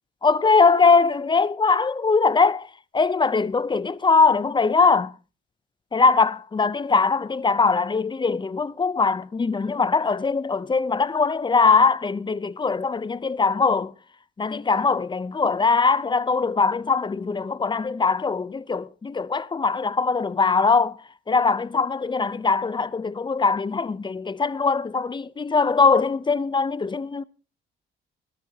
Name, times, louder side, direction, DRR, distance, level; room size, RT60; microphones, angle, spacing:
voice 1, 0.2-2.7 2.9-5.1 5.9-13.9 14.4-20.9 21.3-27.2, left 4 dB, 25° left, 0.6 m, -21 dB
21.0 x 13.0 x 2.8 m
cardioid pair, 90°, 20 cm